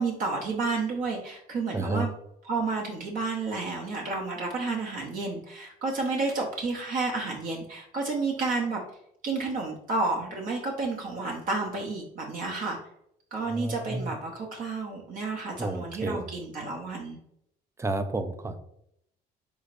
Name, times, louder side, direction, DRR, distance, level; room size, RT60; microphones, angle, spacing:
voice 1, 0.0-2.1 2.4-8.8 9.2-12.8 13.3-17.2, right 3 dB, 55° right, 0 dB, 0.9 m, -31 dB
voice 2, 1.7-2.1 13.4-14.1 15.6-16.2 17.8-18.6, right 2 dB, 15° right, 9 dB, 0.5 m, -31 dB
5.0 x 3.8 x 2.5 m, 0.74 s
cardioid pair, 110°, 17 cm